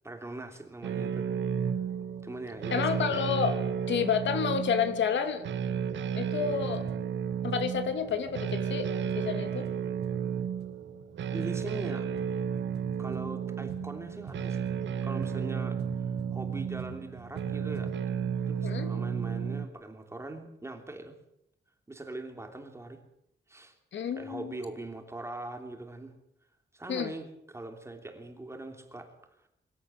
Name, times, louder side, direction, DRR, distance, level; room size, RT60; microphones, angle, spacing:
voice 1, 0.0-1.3 1.5-1.7 2.2-2.9 11.3-12.1 13.0-14.6 15.0-15.8 16.3-17.9 18.4-21.2 21.9-23.0 23.5-23.7 24.2-26.1 26.7-29.1 29.4-29.5, right 2 dB, 15° right, 5 dB, 3.2 m, -41 dB
sound 1, 0.8-19.7, right 7 dB, 80° right, 1.6 m, -33 dB
voice 2, 2.7-3.6 3.9-5.4 6.1-6.8 7.4-8.9 9.1-9.7 18.6-18.9 23.9-24.5 26.9-27.1, left 7 dB, 80° left, 8 dB, 2.8 m, -29 dB
sound 2, 6.3-18.0, right 3 dB, 60° right, 6.6 m, -49 dB
24.5 x 13.5 x 8.9 m, 0.80 s
wide cardioid pair, 165°, 19 cm